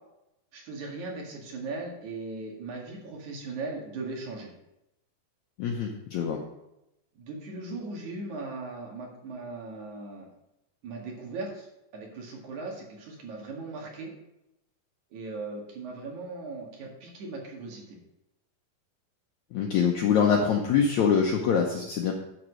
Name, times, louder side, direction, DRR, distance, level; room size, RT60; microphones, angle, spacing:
voice 1, 0.5-4.5 7.1-10.3 10.8-11.7 11.9-14.1 15.1-18.0, right 3 dB, 60° right, -1 dB, 3.3 m, -38 dB
voice 2, 5.6-6.4 19.5-22.1, left 6 dB, 70° left, 1 dB, 1.9 m, -24 dB
10.5 x 5.3 x 6.2 m, 0.88 s
omnidirectional pair, 4.1 m